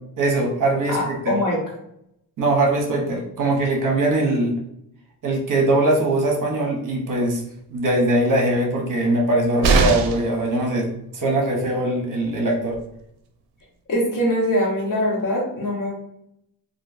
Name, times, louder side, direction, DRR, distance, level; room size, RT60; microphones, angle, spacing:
voice 1, 0.2-1.3 2.4-4.5 5.2-7.4 7.7-10.9 11.1-12.8, right 2 dB, 50° right, 0 dB, 0.8 m, -21 dB
voice 2, 0.9-1.6 13.9-15.9, left 1 dB, 50° left, -3 dB, 1.1 m, -22 dB
sound 1, 9.6-10.4 12.3-12.4 12.7-12.8, right 4 dB, 75° right, 0.5 m, -19 dB
2.9 x 2.5 x 2.5 m, 0.78 s
cardioid pair, 130°, 39 cm